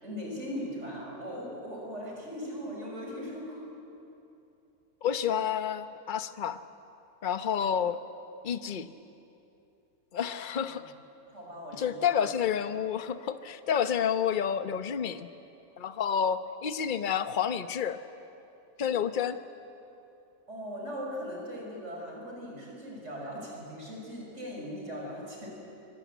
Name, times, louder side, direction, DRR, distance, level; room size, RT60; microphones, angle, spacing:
voice 1, 0.0-3.6 10.1-10.3 10.6-10.8 11.3-12.3 20.5-25.5, equal, 40° right, -2 dB, 6.4 m, -39 dB
voice 2, 5.0-6.6 7.2-8.0 8.4-8.9 10.1-10.8 11.8-15.3 15.8-18.0 18.8-19.4, left 8 dB, 40° left, 10 dB, 0.8 m, -29 dB
24.0 x 24.0 x 9.4 m, 2.8 s
omnidirectional pair, 1.9 m